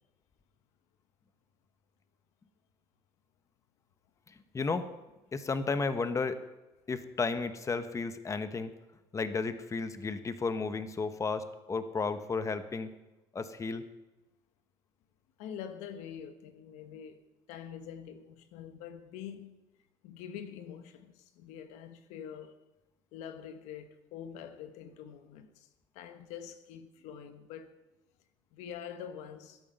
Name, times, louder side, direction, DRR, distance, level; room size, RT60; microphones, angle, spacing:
voice 1, 4.3-4.9 5.3-6.4 6.9-8.7 9.1-12.9 13.3-13.9, left 4 dB, 25° left, 1.1 m, -33 dB
voice 2, 15.4-17.2 17.5-19.5 20.0-22.6 23.1-25.7 25.9-27.8 28.5-29.6, left 8 dB, 75° left, 1.2 m, -45 dB
21.0 x 8.7 x 5.4 m
supercardioid pair, 80°, 12 cm